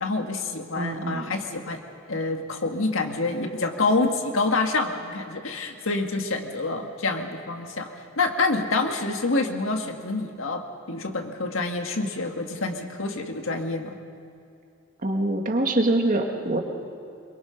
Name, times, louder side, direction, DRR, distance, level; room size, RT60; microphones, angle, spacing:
voice 1, 0.0-1.8 2.1-7.9 8.2-14.0, left 3 dB, 75° left, 5 dB, 1.7 m, -27 dB
voice 2, 0.8-1.3 15.0-16.6, right 2 dB, 40° right, 3 dB, 1.7 m, -24 dB
23.0 x 22.5 x 5.8 m, 2.5 s
head